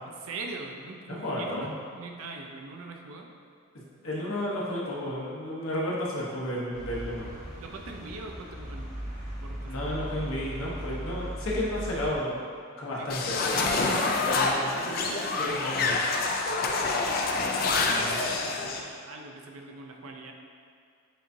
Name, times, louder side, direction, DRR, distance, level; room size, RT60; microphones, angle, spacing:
voice 1, 0.1-1.7 1.9-3.3 7.6-8.9 9.4-10.0 13.0-13.2 14.2-16.0 17.6-18.6 19.0-20.3, right 3 dB, 90° right, 2 dB, 0.5 m, -42 dB
voice 2, 1.1-1.7 4.0-7.3 9.7-12.4 12.8-14.8 15.4-16.0 17.8-18.2, left 1 dB, 85° left, -5 dB, 1.0 m, -32 dB
sound 1, 6.7-12.2, right 1 dB, 15° right, 1.1 m, -38 dB
sound 2, 13.1-18.8, left 3 dB, 45° left, 0.3 m, -27 dB
7.4 x 2.6 x 2.7 m, 2.3 s
head